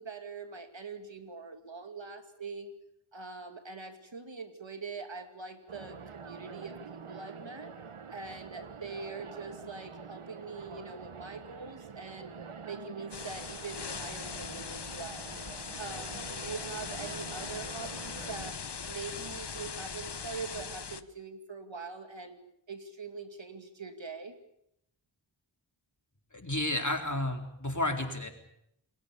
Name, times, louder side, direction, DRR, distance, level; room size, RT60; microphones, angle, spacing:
voice 1, 0.0-2.7 3.1-7.7 8.1-12.3 12.6-15.3 15.8-18.6 18.8-22.4 22.7-24.4, right 4 dB, 65° right, 7 dB, 2.6 m, -43 dB
sound 1, 5.7-18.5, right 6 dB, 80° right, 1.3 m, -46 dB
sound 2, 13.1-21.0, left 5 dB, 55° left, 1.1 m, -40 dB
voice 2, 26.3-28.3, left 1 dB, 35° left, 4 dB, 4.1 m, -31 dB
29.5 x 21.5 x 7.1 m, 0.77 s
wide cardioid pair, 60°, 49 cm